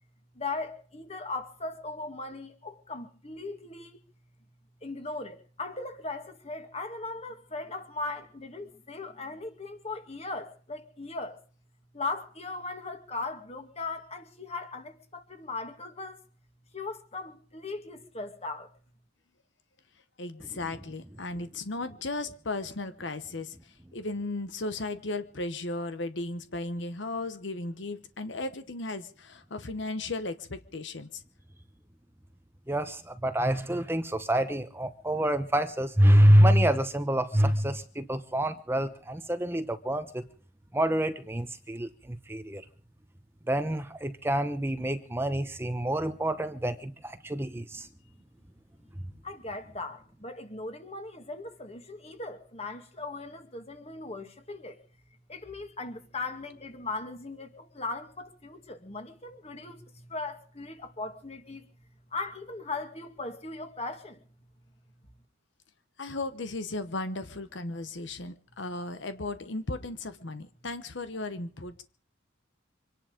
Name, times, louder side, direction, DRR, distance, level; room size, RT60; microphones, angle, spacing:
voice 1, 0.3-4.0 4.8-11.4 11.9-16.2 16.7-18.7 49.2-54.8 55.3-61.6 62.1-64.2, left 3 dB, 30° left, 2.3 m, -38 dB
voice 2, 20.2-31.2 66.0-71.8, left 2 dB, 65° left, 1.0 m, -36 dB
voice 3, 32.7-40.2 40.7-42.6 43.5-47.9, equal, 10° right, 0.9 m, -26 dB
25.5 x 10.5 x 5.2 m
head